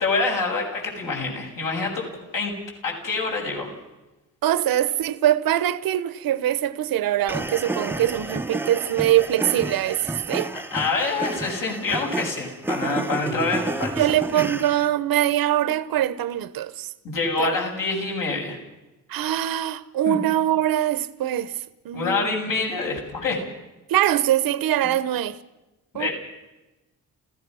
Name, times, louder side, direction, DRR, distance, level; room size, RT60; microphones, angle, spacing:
voice 1, 0.0-2.0 2.3-2.5 2.8-3.7 10.5-14.1 14.3-14.4 17.0-18.6 20.1-20.2 21.9-23.4 25.9-26.1, left 3 dB, 65° left, 7.3 m, -26 dB
voice 2, 4.4-10.5 14.0-16.9 17.4-17.6 19.1-22.3 23.9-25.4 25.9-26.1, right 12 dB, 80° right, 1.0 m, -23 dB
sound 1, 7.3-14.9, right 2 dB, 5° right, 0.6 m, -30 dB
29.5 x 16.0 x 6.3 m
cardioid pair, 150°, 35 cm